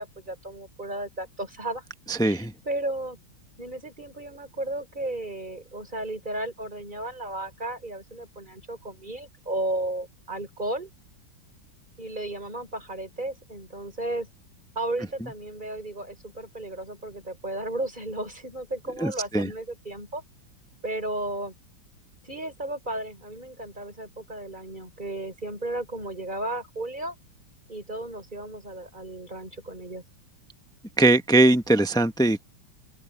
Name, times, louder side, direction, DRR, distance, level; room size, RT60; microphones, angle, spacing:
voice 1, 0.0-1.8 2.2-3.2 3.6-10.9 12.0-14.3 14.7-20.2 20.8-21.5 22.2-27.1 27.7-30.0, right 1 dB, 20° right, 6.1 m, -34 dB
voice 2, 2.1-2.5 19.0-19.5 31.0-32.4, right 2 dB, 5° left, 0.4 m, -21 dB
open air
omnidirectional pair, 2.2 m